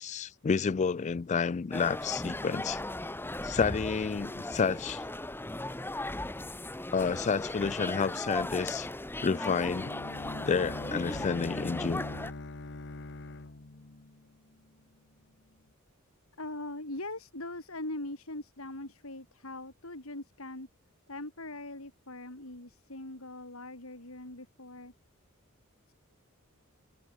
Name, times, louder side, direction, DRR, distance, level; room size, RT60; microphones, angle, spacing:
voice 1, 0.0-2.8 3.4-5.0 6.9-8.9 9.2-9.9 10.4-12.0, left 5 dB, 35° left, 0.4 m, -30 dB
sound 1, 1.7-12.3, left 1 dB, 10° left, 1.4 m, -37 dB
Bowed string instrument, 9.8-14.7, left 2 dB, 60° left, 1.2 m, -42 dB
voice 2, 16.4-20.7 21.1-24.9 25.9-26.0, left 2 dB, 80° left, 5.3 m, -41 dB
head